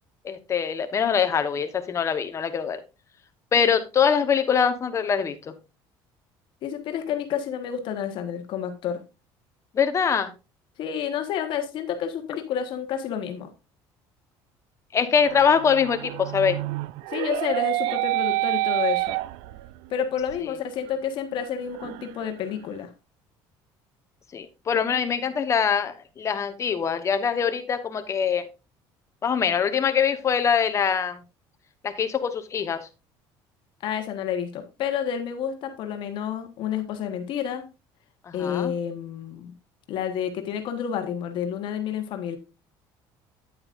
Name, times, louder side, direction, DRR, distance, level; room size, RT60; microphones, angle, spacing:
voice 1, 0.2-2.8 3.5-5.5 9.7-10.3 14.9-16.6 24.3-28.5 29.2-31.2 31.8-32.9 38.3-38.7, left 7 dB, 30° left, 9 dB, 1.1 m, -23 dB
voice 2, 6.6-9.0 10.8-13.5 17.1-19.1 19.9-22.9 33.8-37.6 38.3-39.5 39.9-42.4, left 8 dB, 60° left, 6 dB, 1.3 m, -29 dB
sound 1, 15.2-19.9 20.3-20.4 20.9-21.0 21.3-22.5, right 19 dB, 85° right, 0.4 m, -28 dB
9.1 x 8.7 x 2.5 m, 0.28 s
cardioid pair, 125°, 9 cm